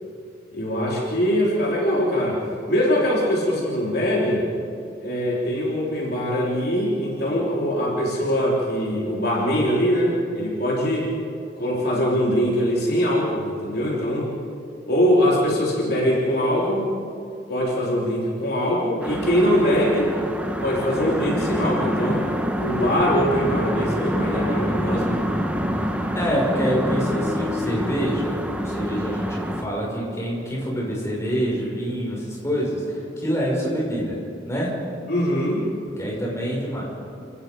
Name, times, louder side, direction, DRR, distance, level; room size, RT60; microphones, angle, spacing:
voice 1, 0.5-2.4 2.7-4.5 5.0-11.1 11.6-14.4 14.9-16.9 17.5-20.1 20.6-22.2 22.6-25.3 35.1-35.6, equal, 55° left, -3 dB, 3.4 m, -22 dB
sound 1, 19.0-29.6, equal, 5° right, 1.2 m, -26 dB
voice 2, 26.1-34.2 34.4-34.7 36.0-36.8, equal, 15° left, -4 dB, 5.9 m, -26 dB
29.0 x 18.0 x 5.3 m, 2.4 s
head